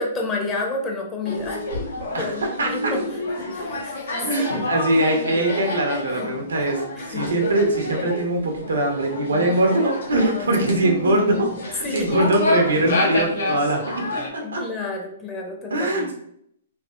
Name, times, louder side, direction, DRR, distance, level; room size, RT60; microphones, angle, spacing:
voice 1, 0.0-1.6 2.2-3.0 3.5-4.6 6.1-6.5 7.0-7.3 10.8-11.6 11.8-12.3 14.4-16.1, left 3 dB, 20° left, 0 dB, 0.7 m, -30 dB
sound 1, 1.2-14.3, left 2 dB, 80° left, 0.9 m, -28 dB
voice 2, 2.1-2.9 4.2-6.8 7.1-14.6 15.7-16.1, right 1 dB, 90° right, 1 dB, 0.9 m, -22 dB
3.5 x 2.7 x 2.4 m, 0.72 s
hypercardioid pair, 130°, 0 cm